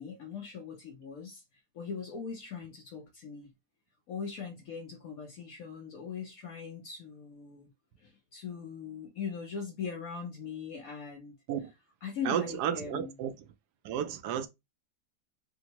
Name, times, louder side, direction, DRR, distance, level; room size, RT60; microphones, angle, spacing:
voice 1, 0.0-3.5 4.1-7.7 8.0-11.3 12.0-13.1, left 6 dB, 65° left, 1.0 m, -40 dB
voice 2, 12.2-13.3 13.8-14.5, right 9 dB, 75° right, 1.1 m, -32 dB
4.3 x 2.0 x 2.8 m
omnidirectional pair, 1.8 m